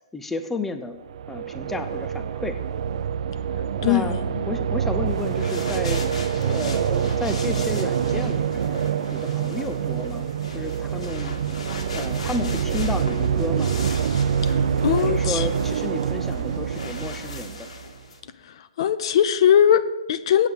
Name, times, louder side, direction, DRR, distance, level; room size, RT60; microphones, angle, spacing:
voice 1, 0.1-1.0 1.3-2.6 3.8-4.2 4.5-6.0 6.4-8.8 9.1-11.4 11.9-13.8 15.0-17.7, left 3 dB, 5° left, 8 dB, 0.6 m, -32 dB
sound 1, 1.0-18.0, right 7 dB, 60° right, 0.5 m, -26 dB
sound 2, 1.6-11.8, right 4 dB, 80° right, 1.5 m, -46 dB
voice 2, 3.8-4.4 14.4-15.5 18.4-20.5, left 9 dB, 50° left, 14 dB, 0.6 m, -21 dB
sound 3, 5.1-18.2, left 4 dB, 70° left, 2.0 m, -40 dB
8.4 x 7.3 x 8.0 m, 1.1 s
hypercardioid pair, 145°, 4 cm